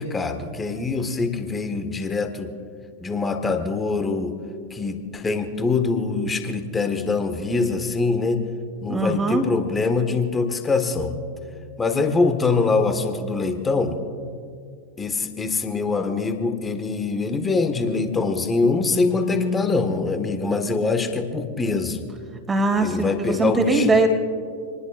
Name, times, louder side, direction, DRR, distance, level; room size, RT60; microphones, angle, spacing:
voice 1, 0.0-2.5 3.0-4.3 4.7-8.4 8.8-11.1 11.8-14.0 15.0-22.0 22.8-24.0, left 4 dB, 15° left, 7 dB, 1.6 m, -24 dB
voice 2, 8.9-9.4 18.9-20.1 22.5-24.1, right 2 dB, 15° right, 3 dB, 2.5 m, -22 dB
27.0 x 20.0 x 2.5 m, 2.2 s
figure-of-eight pair, 90°, 0 cm